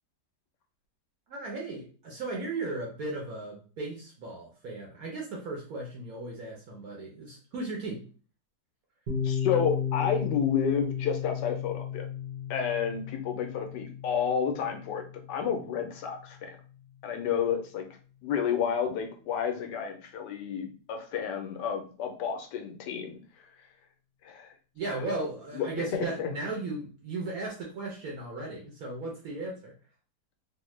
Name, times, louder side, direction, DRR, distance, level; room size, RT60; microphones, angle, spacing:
voice 1, 1.3-8.1 24.7-29.7, right 2 dB, 65° right, -1 dB, 1.0 m, -36 dB
Piano, 9.1-16.5, left 8 dB, 45° right, 0.6 m, -34 dB
voice 2, 9.2-12.1 12.5-15.0 15.3-16.6 17.0-17.9 18.2-23.5 24.2-24.5 24.8-25.1 25.5-26.3, left 7 dB, 80° left, 4 dB, 1.2 m, -31 dB
3.2 x 2.1 x 3.1 m, 0.39 s
omnidirectional pair, 1.8 m